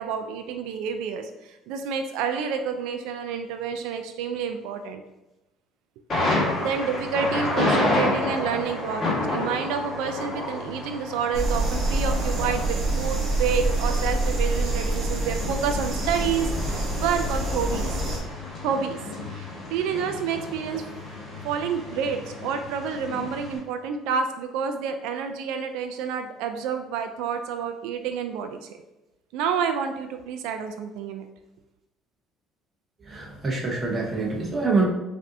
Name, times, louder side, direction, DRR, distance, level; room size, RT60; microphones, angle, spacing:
voice 1, 0.0-5.0 6.6-18.0 18.6-19.0 19.3-20.8 21.4-28.7 29.3-31.3, right 7 dB, 80° right, 6 dB, 0.3 m, -29 dB
Thunder, 6.1-23.6, left 2 dB, 25° left, 1.5 m, -30 dB
sound 1, 11.3-18.2, right 2 dB, 40° right, 1.0 m, -26 dB
voice 2, 33.0-34.9, right 3 dB, 15° right, -1 dB, 0.7 m, -25 dB
5.3 x 2.6 x 2.6 m, 0.99 s
cardioid pair, 180°, 0 cm